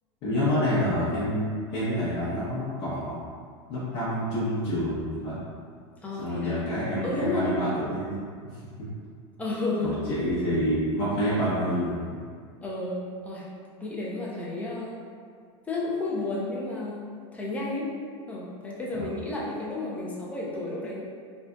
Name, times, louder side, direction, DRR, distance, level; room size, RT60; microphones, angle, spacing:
voice 1, 0.2-3.1 3.7-5.4 6.2-8.2 9.8-12.0 18.9-19.1, equal, 50° left, -12 dB, 0.9 m, -27 dB
voice 2, 6.0-6.6 7.0-7.6 9.4-9.9 12.6-13.5 13.8-15.0 15.7-17.0 17.3-17.9 18.3-21.0, left 2 dB, 10° left, -5 dB, 0.6 m, -32 dB
3.6 x 2.5 x 2.2 m, 2.1 s
supercardioid pair, 130°, 15 cm